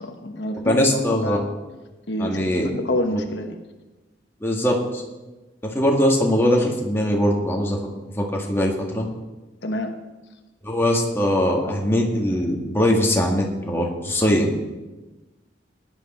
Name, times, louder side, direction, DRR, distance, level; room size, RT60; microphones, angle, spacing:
voice 1, 0.0-1.5 2.1-3.6 9.6-9.9, left 1 dB, 70° left, 5 dB, 1.1 m, -27 dB
voice 2, 0.7-1.4 2.2-2.7 3.1-3.2 4.4-5.0 5.6-7.8 8.2-9.1 10.6-14.5, left 1 dB, 15° left, -1 dB, 1.8 m, -21 dB
17.0 x 10.5 x 4.4 m, 1.1 s
head